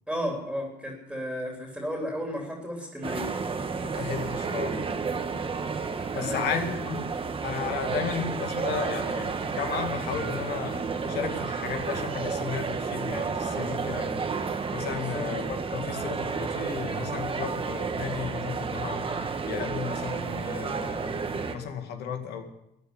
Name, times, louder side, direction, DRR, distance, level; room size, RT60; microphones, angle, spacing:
voice 1, 0.1-3.3 6.1-6.8 14.9-15.3, equal, ahead, 0 dB, 3.4 m, -33 dB
sound 1, 3.0-21.6, right 5 dB, 30° right, 1.5 m, -31 dB
voice 2, 3.8-5.0 6.1-7.0 7.4-22.5, left 7 dB, 75° left, 5 dB, 2.3 m, -34 dB
14.5 x 10.0 x 8.1 m, 0.85 s
cardioid pair, 110°, 17 cm